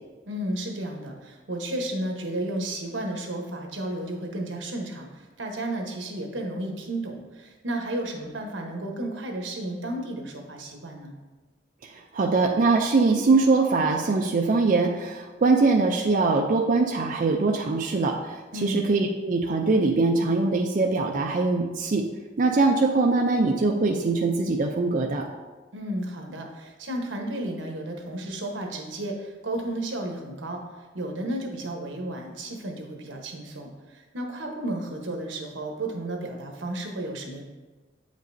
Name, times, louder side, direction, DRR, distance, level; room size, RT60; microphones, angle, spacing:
voice 1, 0.3-11.1 18.5-18.9 25.7-30.6 30.9-37.4, right 1 dB, 85° right, 2 dB, 1.0 m, -33 dB
voice 2, 11.8-22.1 22.4-25.2, right 3 dB, 45° right, 0 dB, 0.4 m, -22 dB
8.2 x 5.2 x 2.6 m, 1.2 s
head